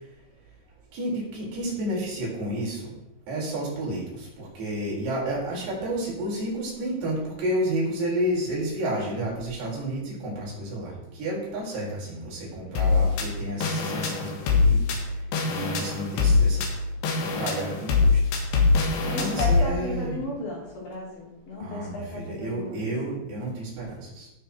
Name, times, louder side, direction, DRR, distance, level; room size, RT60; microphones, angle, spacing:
voice 1, 0.9-2.9 3.3-14.8 15.4-16.6 17.2-18.2 19.1-20.2 21.6-24.3, right 1 dB, 70° right, -5 dB, 6.5 m, -31 dB
sound 1, 12.8-19.6, left 4 dB, 85° left, 3.9 m, -23 dB
voice 2, 19.1-22.8, left 1 dB, 60° left, -3 dB, 4.8 m, -34 dB
16.0 x 7.3 x 4.5 m, 0.92 s
omnidirectional pair, 4.8 m